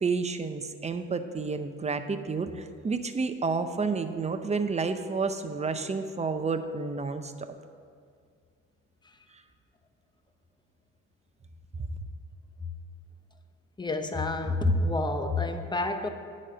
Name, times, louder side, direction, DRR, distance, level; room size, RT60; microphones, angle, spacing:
voice 1, 0.0-7.3, right 4 dB, 20° right, 9 dB, 0.6 m, -30 dB
voice 2, 13.8-16.1, left 2 dB, 15° left, 7 dB, 0.7 m, -28 dB
10.5 x 4.3 x 7.5 m, 2.1 s
cardioid pair, 90°, 30 cm